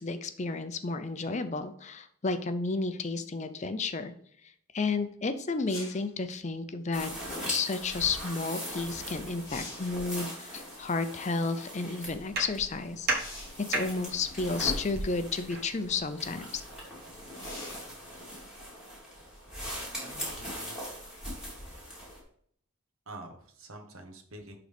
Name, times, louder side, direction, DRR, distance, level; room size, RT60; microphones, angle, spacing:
voice 1, 0.0-4.1 4.4-7.1 7.5-13.1 13.7-16.6, left 4 dB, 30° left, 9 dB, 0.5 m, -32 dB
sound 1, 5.7-6.1 8.8-8.9 9.3-10.0 13.1-13.6 14.7-14.8 17.3-17.9 21.5-21.6, left 2 dB, 15° left, 1.9 m, -45 dB
sound 2, 6.9-22.2, equal, 5° right, 2.8 m, -41 dB
sound 3, 12.0-18.3, right 2 dB, 45° right, 1.4 m, -38 dB
voice 2, 20.0-20.8 23.1-24.6, right 2 dB, 75° right, 5 dB, 1.3 m, -47 dB
11.5 x 3.9 x 3.5 m, 0.64 s
head